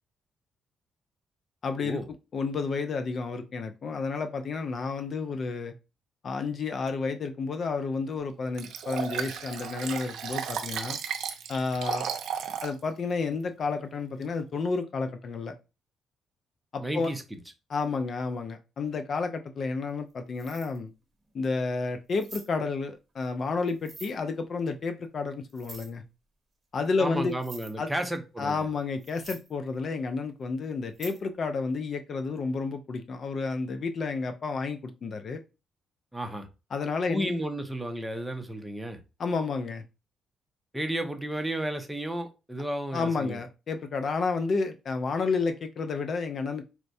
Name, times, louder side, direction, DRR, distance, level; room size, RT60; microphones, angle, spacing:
voice 1, 1.6-2.0 2.3-5.7 6.2-11.0 11.5-12.1 12.6-15.5 16.7-17.1 17.7-20.9 21.3-26.0 26.7-27.3 27.8-27.9 28.4-35.4 36.7-37.3 39.2-39.8 42.9-46.6, left 4 dB, 50° left, 0.4 m, -31 dB
Liquid, 8.6-12.7 13.2-13.3, right 8 dB, 80° right, 0.5 m, -34 dB
voice 2, 16.8-17.4 27.0-28.7 36.1-36.5 37.1-39.0 40.7-43.4, right 1 dB, 5° right, 0.6 m, -32 dB
sound 1, 19.9-20.1 20.4-20.8 21.3-21.4 22.1-22.5 23.6-24.1 25.5-25.9 26.9-27.0 27.3-27.7 28.6-28.7 29.0-29.5 30.9-31.2, right 3 dB, 30° right, 0.9 m, -46 dB
4.4 x 2.1 x 2.6 m
cardioid pair, 90°, 0 cm